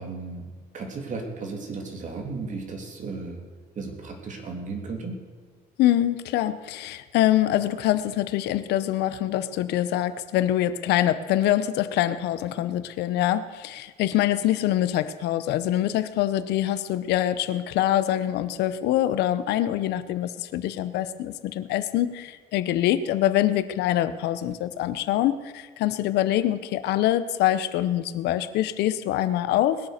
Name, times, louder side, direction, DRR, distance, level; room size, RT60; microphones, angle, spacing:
voice 1, 0.0-3.4 3.7-5.3, right 4 dB, 45° right, 3 dB, 3.1 m, -35 dB
voice 2, 5.8-29.8, left 13 dB, 85° left, 13 dB, 0.8 m, -24 dB
20.5 x 8.6 x 6.6 m, 1.5 s
cardioid pair, 110°, 17 cm